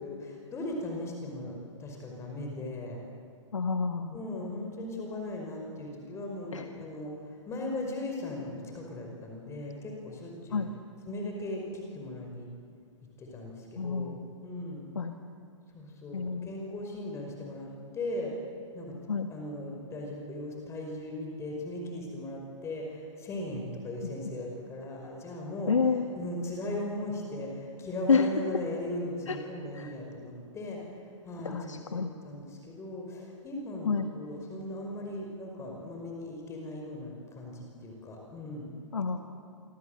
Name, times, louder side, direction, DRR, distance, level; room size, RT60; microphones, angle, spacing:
voice 1, 0.0-3.0 4.1-10.7 11.1-12.5 13.2-14.1 14.4-14.9 15.7-18.3 18.7-19.0 19.3-25.8 26.2-30.8 31.2-38.7, left 1 dB, 15° left, 1 dB, 5.3 m, -38 dB
voice 2, 3.5-4.2 6.5-6.6 10.5-10.7 13.8-14.2 15.0-15.2 16.1-16.5 19.1-19.3 25.7-26.0 28.1-28.3 29.3-29.4 29.8-29.9 31.5-32.1 33.9-34.1 38.9-39.2, left 5 dB, 70° left, 6 dB, 1.7 m, -28 dB
27.5 x 24.5 x 8.1 m, 2.3 s
figure-of-eight pair, 120°, 16 cm